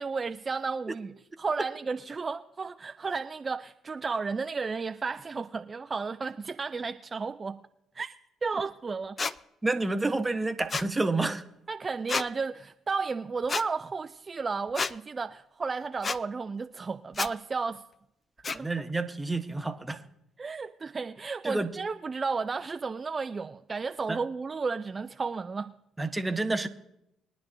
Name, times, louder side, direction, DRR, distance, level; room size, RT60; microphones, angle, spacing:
voice 1, 0.0-7.6 7.9-8.2 8.4-9.2 11.7-17.8 18.6-18.7 20.4-25.7, right 4 dB, 35° right, 0.4 m, -33 dB
sound 1, 9.2-9.3 10.7-10.9 12.1-12.3 13.5-13.6 14.8-14.9 16.0-16.2 17.1-17.3 18.4-18.6, left 4 dB, 35° left, 0.5 m, -30 dB
voice 2, 9.6-11.4 18.5-20.0 21.4-21.7 24.1-24.2 26.0-26.7, right 2 dB, 20° right, 1.0 m, -29 dB
21.5 x 10.0 x 2.6 m
hypercardioid pair, 50°, 0 cm